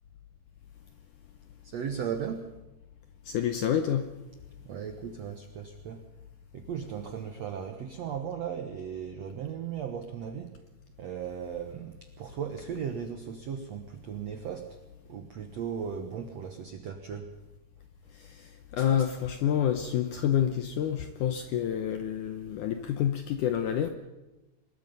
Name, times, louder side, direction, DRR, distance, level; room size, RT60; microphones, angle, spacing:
voice 1, 1.6-2.5 4.6-6.0 6.5-10.6 11.0-14.8 15.1-17.3 18.8-18.9, right 7 dB, 75° right, 6 dB, 1.5 m, -37 dB
voice 2, 3.3-4.1 18.7-23.9, left 9 dB, 75° left, 8 dB, 1.8 m, -28 dB
24.5 x 20.5 x 5.4 m, 1.1 s
omnidirectional pair, 4.6 m